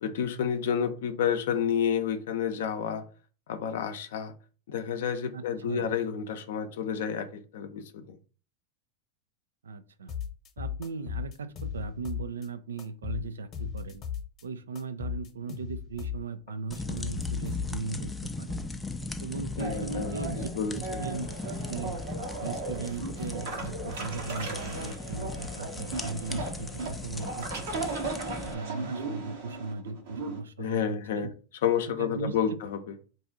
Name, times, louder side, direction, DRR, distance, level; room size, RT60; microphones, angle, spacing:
voice 1, 0.0-3.0 3.5-4.3 4.7-8.2 19.6-20.2 20.6-21.1 30.6-31.3 31.6-32.9, left 8 dB, 75° left, 8 dB, 0.5 m, -30 dB
voice 2, 5.3-6.0 9.6-10.1 10.6-14.0 14.4-18.6 19.2-20.5 20.7-22.0 22.4-27.9 28.4-31.3 31.9-32.6, right 4 dB, 90° right, 12 dB, 0.3 m, -38 dB
sound 1, 10.1-12.5 12.8-14.4 14.8-18.0, left 8 dB, 40° left, 0.9 m, -36 dB
sound 2, 16.7-28.5, left 3 dB, 10° left, 0.3 m, -38 dB
sound 3, 19.6-30.4, right 3 dB, 70° right, 1.0 m, -37 dB
2.6 x 2.4 x 3.9 m, 0.37 s
hypercardioid pair, 105°, 0 cm